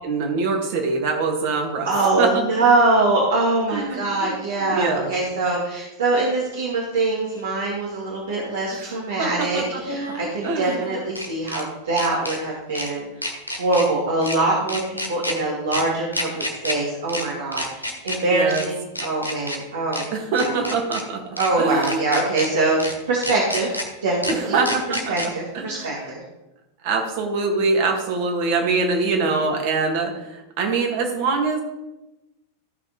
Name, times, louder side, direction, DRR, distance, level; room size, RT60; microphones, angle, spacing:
voice 1, 0.0-1.9 2.2-2.3 3.7-5.1 8.7-8.8 9.2-9.8 10.4-10.8 18.3-18.7 20.1-21.2 21.6-22.0 24.5-26.1 26.8-31.6, right 4 dB, 45° right, 2 dB, 2.2 m, -24 dB
voice 2, 1.8-13.1 13.5-20.1 20.4-20.7 21.4-24.6 24.9-26.2, right 2 dB, 65° right, -4 dB, 2.0 m, -23 dB
sound 1, 7.3-7.4 9.8-11.6 12.0-12.4 12.8-12.9 13.2-13.9 14.2-14.4 14.7-15.4 15.7-15.8 16.1-16.8 17.1-17.2 17.5-18.2 18.5-18.7 19.0-19.6 19.9-20.1 20.4-21.0 21.4-21.5 21.8-22.5 22.8-22.9 23.2-23.9 24.2-24.3 24.7-25.3, left 1 dB, 90° left, 1.4 m, -29 dB
14.0 x 6.1 x 4.2 m, 1.0 s
figure-of-eight pair, 90°, 0 cm